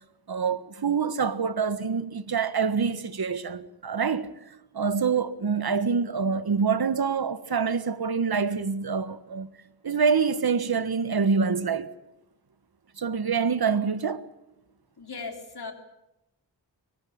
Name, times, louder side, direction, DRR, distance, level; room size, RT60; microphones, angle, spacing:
voice 1, 0.3-4.4 4.7-9.5 9.8-11.9 13.0-14.3, right 5 dB, 55° right, 1.5 m, -26 dB
voice 2, 15.0-15.7, left 4 dB, 60° left, 3.7 m, -37 dB
24.0 x 21.5 x 8.7 m
wide cardioid pair, 75°, 43 cm